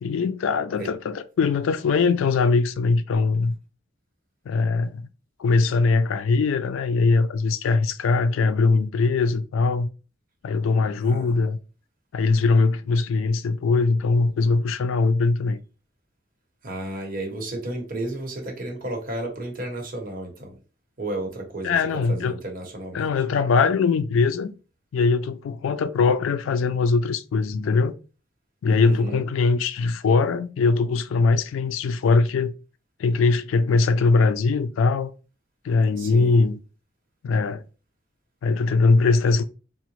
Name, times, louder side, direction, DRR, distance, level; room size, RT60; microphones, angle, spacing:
voice 1, 0.0-3.6 4.5-5.1 5.4-9.9 10.4-11.6 12.1-15.6 21.6-22.4 22.9-24.5 24.9-27.9 28.6-32.5 33.0-35.1 35.6-36.6 37.2-37.6 38.4-39.5, left 4 dB, 85° left, 0.3 m, -21 dB
voice 2, 16.6-20.5 21.0-21.7 22.1-23.1 28.8-29.2 36.0-36.4, right 1 dB, 45° right, 1.0 m, -32 dB
3.8 x 2.0 x 3.0 m
head